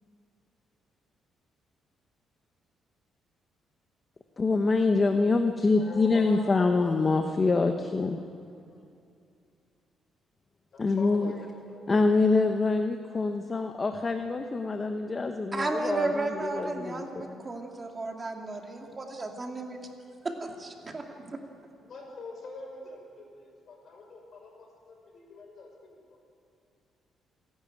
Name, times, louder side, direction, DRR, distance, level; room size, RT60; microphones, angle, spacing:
voice 1, 4.4-8.2 10.8-11.3 11.9-17.4, left 3 dB, 30° left, 6 dB, 1.1 m, -25 dB
voice 2, 5.7-7.0 10.7-12.6 21.8-26.2, left 3 dB, 55° left, 1 dB, 6.0 m, -44 dB
voice 3, 15.5-19.8 20.2-21.4, right 3 dB, 30° right, 2 dB, 2.4 m, -33 dB
27.5 x 11.5 x 9.1 m, 2.5 s
cardioid pair, 90°, 0 cm